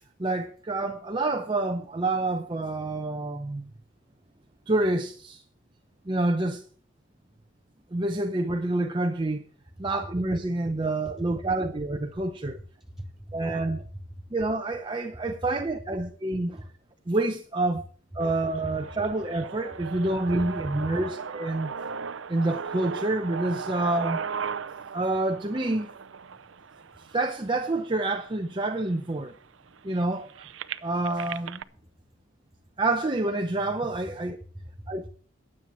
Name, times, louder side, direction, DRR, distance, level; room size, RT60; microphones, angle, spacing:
voice 1, 0.2-3.7 4.7-5.4 6.1-6.6 7.9-9.4 9.8-12.6 13.3-13.8 14.3-16.6 17.1-17.9 18.1-21.7 22.3-24.2 24.9-25.9 27.0-29.3 29.8-30.3 30.8-31.6 32.8-34.4 34.9-35.1, right 2 dB, 25° right, 0.7 m, -28 dB
voice 2, 12.8-14.2 34.5-35.1, equal, ahead, 2.9 m, -42 dB
sound 1, 18.2-28.2 28.8-28.9 29.2-31.6, right 6 dB, 70° right, 0.6 m, -37 dB
22.0 x 7.8 x 4.3 m
head